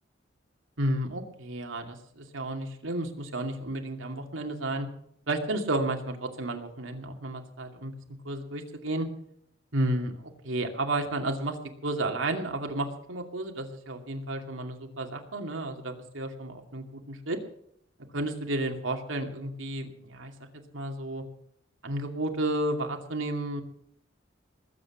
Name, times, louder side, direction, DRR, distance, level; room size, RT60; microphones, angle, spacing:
voice 1, 0.8-4.9 5.3-7.9 8.2-9.1 9.7-11.6 11.8-17.4 18.1-20.3 20.7-21.2 21.8-23.6, right 1 dB, 85° right, 3 dB, 2.5 m, -32 dB
20.0 x 8.5 x 7.2 m, 0.69 s
head